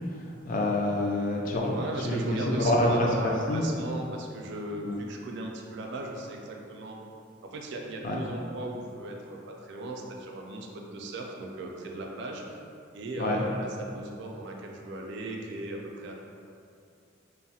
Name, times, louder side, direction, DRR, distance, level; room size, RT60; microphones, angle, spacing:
voice 1, 0.1-1.8 2.0-3.6 4.9-5.0 8.0-8.2 13.2-13.4, left 1 dB, 45° left, -1 dB, 0.3 m, -27 dB
voice 2, 1.7-7.0 7.4-12.4 12.9-16.1, right 2 dB, 60° right, 1 dB, 0.3 m, -37 dB
3.0 x 2.0 x 2.7 m, 2.5 s
head